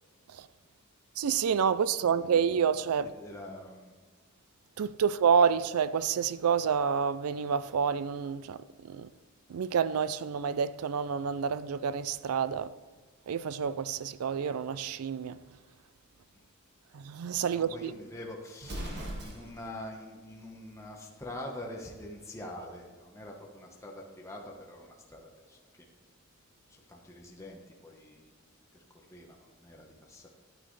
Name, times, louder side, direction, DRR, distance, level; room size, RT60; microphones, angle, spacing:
voice 1, 1.2-3.1 4.8-8.6 8.8-9.1 9.5-12.7 13.3-15.4 16.9-17.9, right 7 dB, 85° right, 0.4 m, -28 dB
voice 2, 2.0-2.3 3.0-3.9 16.3-16.5 17.5-25.9 26.7-28.4 28.7-30.3, left 1 dB, 15° left, 1.1 m, -45 dB
Explosion, 18.6-19.7, right 1 dB, 50° right, 1.9 m, -39 dB
10.0 x 9.7 x 3.2 m
head